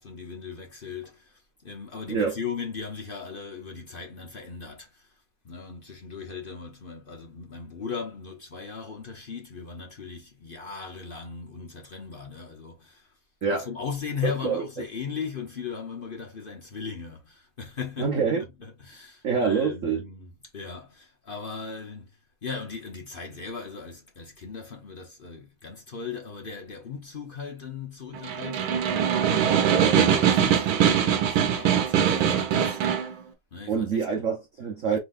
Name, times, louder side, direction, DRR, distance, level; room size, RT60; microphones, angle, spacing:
voice 1, 0.0-5.1 5.4-13.1 13.5-18.1 18.8-22.1 22.4-32.8 33.5-34.0 34.9-35.0, left 5 dB, 55° left, 0.6 m, -38 dB
voice 2, 2.1-2.4 13.4-13.7 14.2-14.6 18.0-18.4 19.2-20.0 33.7-35.0, right 5 dB, 55° right, 0.9 m, -26 dB
Snare drum, 28.1-33.1, right 8 dB, 70° right, 1.6 m, -22 dB
4.6 x 3.9 x 2.5 m
omnidirectional pair, 2.4 m